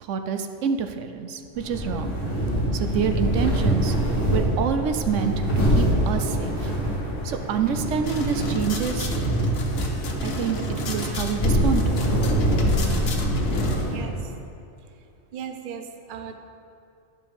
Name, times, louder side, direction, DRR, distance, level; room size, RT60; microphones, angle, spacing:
voice 1, 0.0-2.1 2.7-3.9 4.3-5.3 5.7-6.7 7.2-9.1 10.2-12.2 12.8-13.1, right 7 dB, 80° right, 7 dB, 0.9 m, -27 dB
sound 1, 1.6-14.3, equal, 80° left, 2.1 m, -24 dB
sound 2, 8.0-13.8, left 4 dB, 60° left, 1.1 m, -36 dB
voice 2, 15.3-16.4, right 7 dB, 55° right, 6 dB, 0.7 m, -36 dB
10.5 x 5.3 x 5.3 m, 2.5 s
omnidirectional pair, 1.3 m